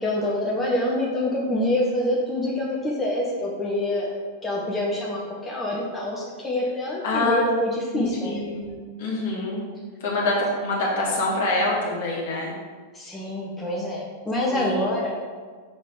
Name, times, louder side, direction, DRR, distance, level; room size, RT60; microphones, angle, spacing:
voice 1, 0.0-4.1 4.4-8.4 12.9-15.1, left 1 dB, 10° left, -4 dB, 1.0 m, -26 dB
voice 2, 7.0-7.5 7.9-9.6 10.0-12.5 14.5-14.9, left 2 dB, 55° left, -4 dB, 1.7 m, -26 dB
5.6 x 4.0 x 4.9 m, 1.5 s
figure-of-eight pair, 90°, 0 cm